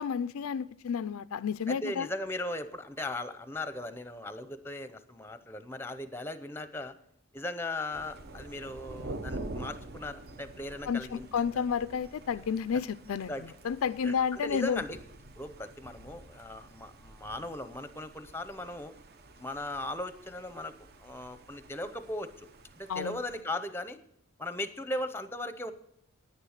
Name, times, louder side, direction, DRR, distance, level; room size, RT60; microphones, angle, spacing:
voice 1, 0.0-2.1 10.9-14.8 22.9-23.2, left 7 dB, 75° left, 0.4 m, -31 dB
voice 2, 1.7-6.9 7.3-11.6 13.3-13.4 14.0-15.0 15.4-18.9 19.4-22.5 22.7-24.0 24.4-25.7, left 1 dB, 10° left, 0.6 m, -38 dB
Thunder, 7.9-23.4, right 2 dB, 45° right, 0.7 m, -47 dB
10.0 x 9.7 x 6.5 m
head